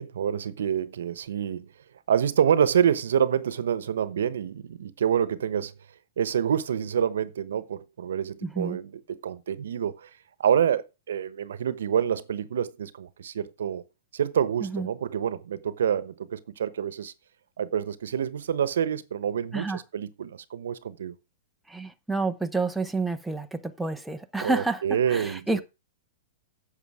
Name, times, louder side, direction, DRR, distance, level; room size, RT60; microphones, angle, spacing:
voice 1, 0.0-1.7 2.1-5.7 6.2-10.1 10.4-13.8 14.1-17.1 17.6-21.2 24.4-25.6, right 8 dB, 85° right, 1.0 m, -27 dB
voice 2, 8.4-8.8 14.6-14.9 19.5-19.8 21.7-24.8 25.1-25.6, right 3 dB, ahead, 0.7 m, -29 dB
9.8 x 6.8 x 4.8 m
supercardioid pair, 165°, 0 cm